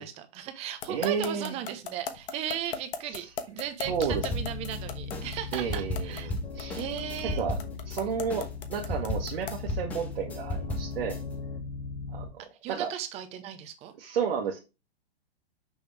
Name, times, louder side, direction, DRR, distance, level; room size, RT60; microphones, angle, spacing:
voice 1, 0.0-6.3 6.7-7.4 12.6-13.9, right 10 dB, 20° right, 0.8 m, -37 dB
sound 1, 0.8-9.7, left 7 dB, 55° left, 1.2 m, -37 dB
voice 2, 0.9-1.5 3.9-4.2 5.5-6.8 7.3-7.6 7.9-11.2 12.1-12.3 12.7-12.9 14.0-14.6, right 7 dB, 60° right, 1.5 m, -31 dB
sound 2, 3.8-12.3, left 5 dB, 85° left, 1.9 m, -39 dB
sound 3, 4.1-4.8 5.1-8.0 8.3-11.2, left 1 dB, 5° left, 0.4 m, -34 dB
6.2 x 5.3 x 3.4 m
hypercardioid pair, 145°, 32 cm